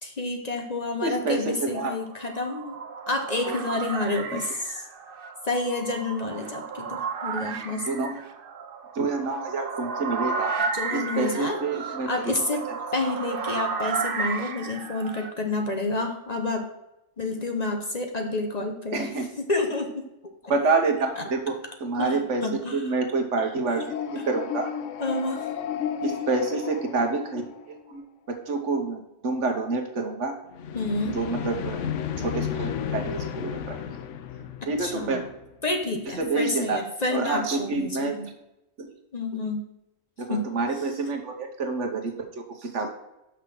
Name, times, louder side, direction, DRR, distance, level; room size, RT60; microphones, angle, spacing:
voice 1, 0.0-2.7 3.1-4.8 5.4-7.9 10.6-12.7 12.9-16.7 17.2-20.0 20.4-20.5 21.2-21.3 22.0-22.9 24.2-24.3 25.0-25.5 30.7-31.2 34.8-35.3 35.6-38.3 39.1-39.6 40.3-40.5, left 2 dB, 40° left, 4 dB, 0.9 m, -29 dB
voice 2, 1.0-1.9 3.5-3.6 7.5-7.6 7.9-8.2 8.9-10.6 10.9-12.1 18.9-19.3 20.5-21.5 21.8-22.4 22.7-24.7 26.0-28.0 28.3-30.3 31.1-31.8 32.2-33.8 34.7-35.2 36.2-36.8 37.1-38.1 38.8-38.9 40.2-42.9, right 3 dB, 75° right, 4 dB, 1.5 m, -28 dB
sound 1, 1.9-15.3, right 5 dB, 55° right, 0.8 m, -33 dB
sound 2, 23.6-27.9 30.5-35.5, left 8 dB, 85° left, 0.9 m, -33 dB
5.9 x 5.7 x 6.2 m, 0.91 s
omnidirectional pair, 1.3 m